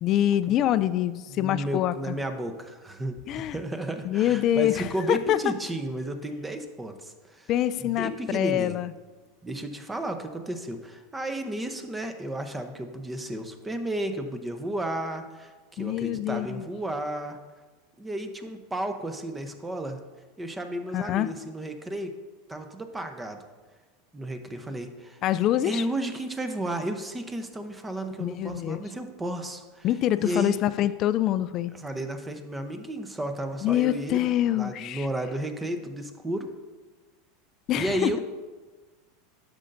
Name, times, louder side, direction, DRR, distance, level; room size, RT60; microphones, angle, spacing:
voice 1, 0.0-2.2 3.3-3.6 4.0-5.4 7.5-8.9 15.8-16.6 20.9-21.3 25.2-25.9 28.2-28.8 29.8-31.7 33.6-35.1 37.7-38.2, left 12 dB, 45° left, 15 dB, 0.3 m, -25 dB
voice 2, 1.3-7.5 7.8-8.8 9.4-17.4 18.0-20.0 20.4-22.1 22.5-23.4 24.1-25.2 25.6-29.9 30.2-30.6 31.8-36.5 37.7-38.2, right 1 dB, 15° right, 7 dB, 0.8 m, -33 dB
10.0 x 6.6 x 2.6 m, 1.4 s
hypercardioid pair, 100°, 0 cm